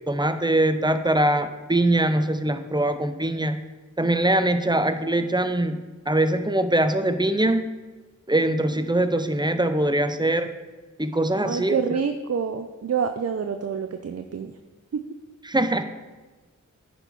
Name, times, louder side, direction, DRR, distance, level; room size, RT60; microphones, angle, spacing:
voice 1, 0.1-3.6 4.0-5.8 6.1-7.7 8.3-10.5 11.0-11.8 15.5-15.8, right 1 dB, 15° right, 9 dB, 0.6 m, -22 dB
voice 2, 11.4-14.5 14.9-15.0, right 6 dB, 55° right, 7 dB, 0.5 m, -27 dB
10.5 x 4.5 x 5.4 m, 1.3 s
wide cardioid pair, 75°, 30 cm